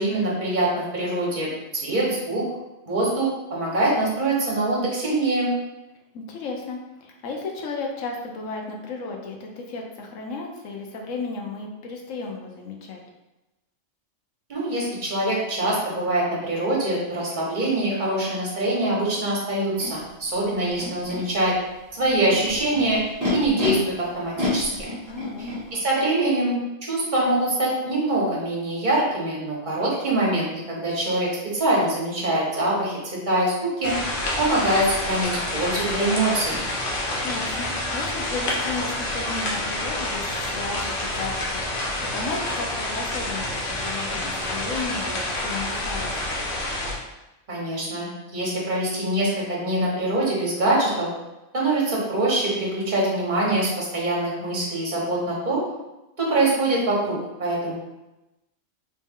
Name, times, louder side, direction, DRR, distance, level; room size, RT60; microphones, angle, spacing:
voice 1, 0.0-1.5 1.8-2.4 2.9-5.5 14.5-21.5 21.9-23.0 23.3-24.9 25.7-33.0 33.3-33.9 34.4-36.6 47.5-51.1 51.5-55.6 56.2-57.7, right 1 dB, 40° right, -4 dB, 1.2 m, -24 dB
voice 2, 6.1-13.0 25.1-25.8 37.2-41.9 42.1-46.2, left 3 dB, 80° left, 1 dB, 1.1 m, -34 dB
Animal, 19.8-19.9 20.7-21.2 22.0-23.7 24.4-25.6, left 1 dB, 15° right, 1.1 m, -29 dB
sound 1, 33.8-46.9, left 1 dB, 50° left, 0.9 m, -28 dB
3.1 x 3.1 x 3.6 m, 0.99 s
omnidirectional pair, 1.3 m